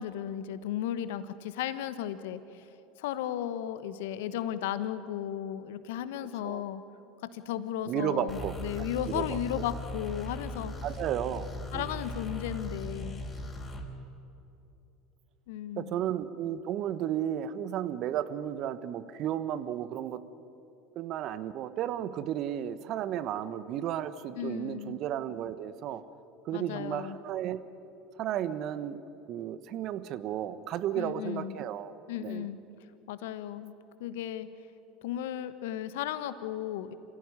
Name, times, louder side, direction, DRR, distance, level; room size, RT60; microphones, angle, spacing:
voice 1, 0.0-2.7 3.0-6.8 7.3-10.7 11.7-13.2 15.5-16.0 24.3-25.0 26.5-27.2 30.9-31.6 32.1-32.6 33.1-34.5 35.0-36.9, left 11 dB, 70° left, 12 dB, 1.3 m, -35 dB
voice 2, 7.9-9.6 10.8-12.0 15.8-20.2 20.9-26.0 26.4-27.6 28.2-29.0 29.3-31.9 32.2-32.5, right 10 dB, 50° right, 13 dB, 1.2 m, -33 dB
sound 1, 8.3-13.8, left 1 dB, 20° left, 4.5 m, -38 dB
27.5 x 16.0 x 9.9 m, 2.9 s
hypercardioid pair, 75°, 0 cm